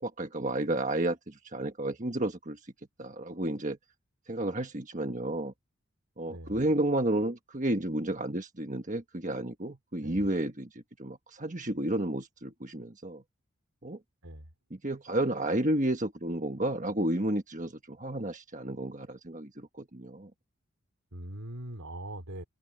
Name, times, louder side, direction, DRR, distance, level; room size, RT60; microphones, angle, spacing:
voice 1, 0.0-2.7 3.0-3.8 4.3-5.5 6.2-13.2 13.8-14.0 14.7-20.3, right 1 dB, 35° right, 1.4 m, -31 dB
voice 2, 21.1-22.4, right 1 dB, 90° right, 4.5 m, -41 dB
head